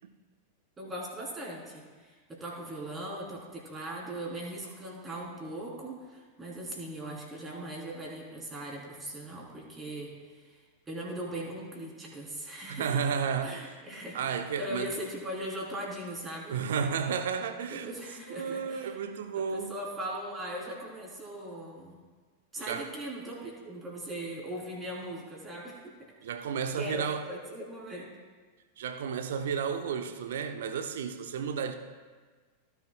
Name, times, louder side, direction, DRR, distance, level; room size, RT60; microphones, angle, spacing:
voice 1, 0.8-10.6 10.9-13.0 13.4-16.6 17.7-19.0 19.4-22.0 22.5-25.9 26.8-28.1, right 1 dB, 15° right, 3.6 m, -39 dB
voice 2, 12.7-13.6 14.1-14.9 16.5-17.9 18.3-19.7 22.6-22.9 26.2-27.2 28.8-31.8, right 6 dB, 60° right, 0.8 m, -32 dB
17.0 x 11.0 x 2.3 m
figure-of-eight pair, 90°, 0 cm